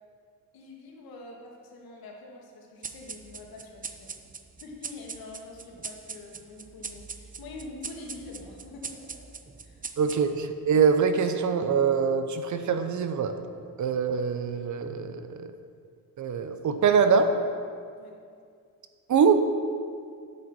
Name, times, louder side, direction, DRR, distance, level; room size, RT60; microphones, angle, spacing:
voice 1, 0.5-4.2 4.6-9.2 9.6-10.1 18.0-18.1, left 3 dB, 85° left, -1 dB, 2.1 m, -45 dB
sound 1, 2.8-10.6, right 5 dB, 25° right, 0.6 m, -42 dB
voice 2, 10.0-13.4 13.8-15.5 16.2-17.3 19.1-19.5, right 6 dB, 55° right, 8 dB, 0.9 m, -24 dB
9.7 x 7.8 x 6.2 m, 2.3 s
cardioid pair, 110°, 35 cm